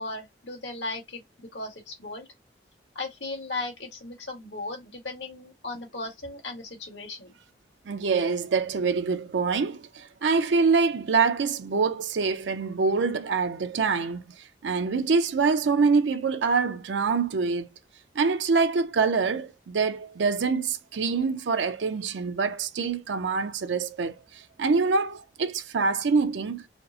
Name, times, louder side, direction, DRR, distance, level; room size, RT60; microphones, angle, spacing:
voice 1, 0.0-2.3 3.0-7.3, left 2 dB, 85° left, 1.7 m, -36 dB
voice 2, 7.9-17.7 18.2-26.7, right 4 dB, 90° right, 0.5 m, -25 dB
4.2 x 2.1 x 2.7 m
head